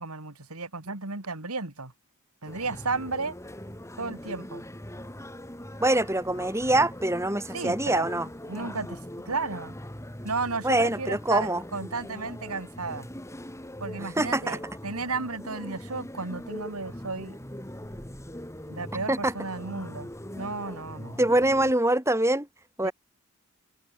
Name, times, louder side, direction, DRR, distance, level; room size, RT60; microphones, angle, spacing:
voice 1, 0.0-1.9 2.4-3.4 4.0-4.6 7.5-8.1 8.5-9.0 9.2-9.7 10.2-13.1 13.8-17.4 18.7-21.2 22.8-22.9, right 3 dB, 85° right, 3.3 m, -33 dB
sound 1, 2.5-21.7, equal, 15° left, 3.4 m, -41 dB
voice 2, 5.8-8.3 10.6-11.6 14.0-14.6 19.1-19.3 21.2-22.5 22.8-22.9, right 1 dB, 10° right, 3.9 m, -24 dB
head